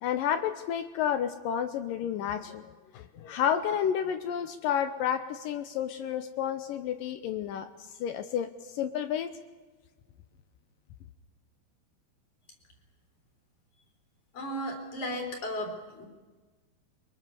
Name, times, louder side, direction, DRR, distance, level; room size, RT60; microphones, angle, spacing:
voice 1, 0.0-7.7 8.0-9.3, left 9 dB, 75° left, 10 dB, 2.4 m, -31 dB
voice 2, 14.3-16.1, equal, 55° left, 2 dB, 5.1 m, -35 dB
23.0 x 22.5 x 7.0 m, 1.3 s
omnidirectional pair, 4.4 m